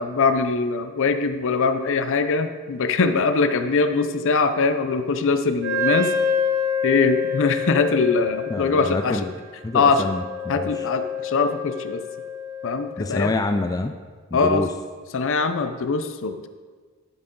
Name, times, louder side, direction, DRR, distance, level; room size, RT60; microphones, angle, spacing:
voice 1, 0.0-6.1 6.8-9.2 9.7-10.1 10.5-12.0 12.6-13.3 14.3-14.6 15.1-16.5, left 4 dB, 60° left, 9 dB, 0.6 m, -22 dB
Wind instrument woodwind instrument, 5.6-12.9, left 4 dB, 55° right, 2.6 m, -27 dB
voice 2, 8.5-9.3 9.6-10.9 13.0-13.9 14.3-14.7, left 2 dB, 15° left, 6 dB, 0.3 m, -26 dB
10.0 x 7.6 x 3.8 m, 1.5 s
head